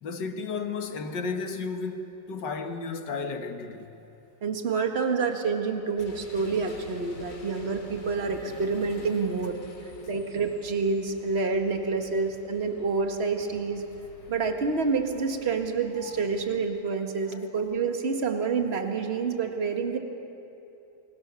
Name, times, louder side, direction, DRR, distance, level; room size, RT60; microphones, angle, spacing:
voice 1, 0.0-4.0 16.0-16.2, left 4 dB, 65° left, 2.0 m, -33 dB
voice 2, 4.4-9.6 10.1-13.8 14.3-20.0, right 4 dB, 35° right, 1.8 m, -28 dB
sound 1, 6.0-16.7, left 2 dB, 40° left, 2.6 m, -49 dB
29.0 x 22.5 x 6.9 m
omnidirectional pair, 2.1 m